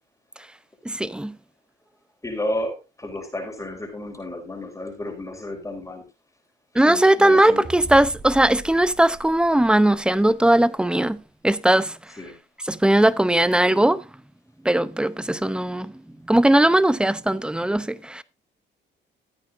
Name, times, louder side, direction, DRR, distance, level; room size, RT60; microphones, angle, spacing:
voice 1, 0.8-1.3 6.7-11.2 11.4-11.9 12.7-14.0 14.6-15.9 16.3-18.2, right 1 dB, 5° right, 0.7 m, -19 dB
voice 2, 2.2-6.0 6.9-7.6 12.2-12.4, left 1 dB, 15° left, 4.2 m, -32 dB
sound 1, 7.6-10.3, right 3 dB, 25° right, 3.3 m, -40 dB
15.0 x 8.9 x 2.6 m
cardioid pair, 90°, 20 cm